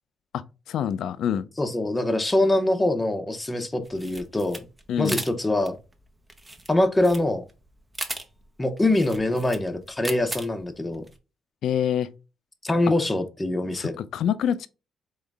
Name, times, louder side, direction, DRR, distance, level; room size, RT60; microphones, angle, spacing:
voice 1, 0.7-1.5 4.9-5.2 11.6-12.1 13.8-14.7, left 9 dB, 75° left, 0.4 m, -26 dB
voice 2, 1.6-4.6 5.0-5.8 6.7-7.4 8.6-11.0 12.6-14.0, left 1 dB, 15° left, 0.8 m, -24 dB
sound 1, 3.8-11.2, right 1 dB, 15° right, 0.8 m, -38 dB
3.8 x 3.1 x 3.4 m
cardioid pair, 90°, 0 cm